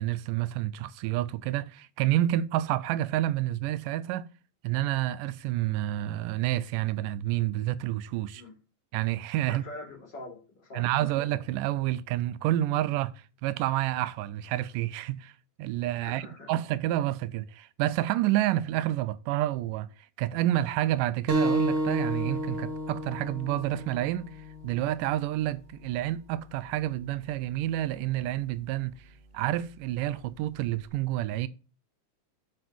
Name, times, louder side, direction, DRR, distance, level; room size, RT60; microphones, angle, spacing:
voice 1, 0.0-4.3 4.6-8.4 8.9-9.6 10.7-15.3 15.6-19.9 20.2-24.3 24.6-28.9 29.3-31.5, right 14 dB, 80° right, 2.1 m, -29 dB
voice 2, 9.5-11.1 16.0-16.5, left 1 dB, 35° left, 3.2 m, -44 dB
sound 1, 21.3-26.4, equal, 30° right, 1.1 m, -32 dB
7.9 x 5.9 x 6.1 m
omnidirectional pair, 3.9 m